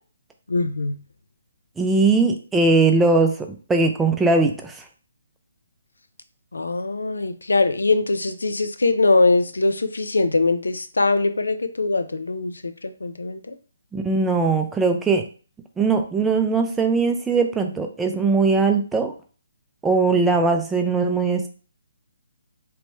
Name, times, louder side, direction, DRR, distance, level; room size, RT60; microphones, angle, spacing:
voice 1, 0.5-1.0 6.5-13.6, left 3 dB, 85° left, 10 dB, 0.3 m, -22 dB
voice 2, 1.8-4.9 13.9-15.2 15.8-19.1 19.8-21.5, right 3 dB, 10° right, 4 dB, 0.3 m, -20 dB
3.1 x 2.1 x 3.0 m, 0.39 s
figure-of-eight pair, 145°, 0 cm